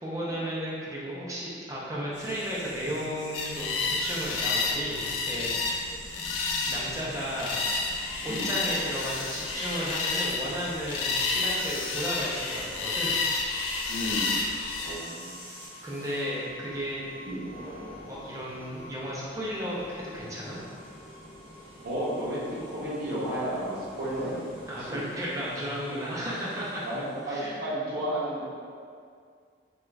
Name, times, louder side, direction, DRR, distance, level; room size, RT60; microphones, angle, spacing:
voice 1, 0.0-5.5 6.7-7.5 8.2-13.2 15.8-17.0 18.1-20.6 24.7-26.9 27.3-27.6, equal, 15° right, -6 dB, 0.4 m, -34 dB
sound 1, 2.1-15.7, left 1 dB, 65° left, 0.7 m, -46 dB
Perth Black Cockatoos at Dusk, 3.3-15.0, left 3 dB, 85° left, 0.3 m, -30 dB
sound 2, 12.8-27.5, left 1 dB, 20° left, 1.0 m, -48 dB
voice 2, 13.9-14.4 14.8-15.4 17.2-17.5 21.8-25.0 26.8-28.4, equal, 50° right, -9 dB, 0.7 m, -33 dB
2.4 x 2.3 x 3.1 m, 2.2 s
head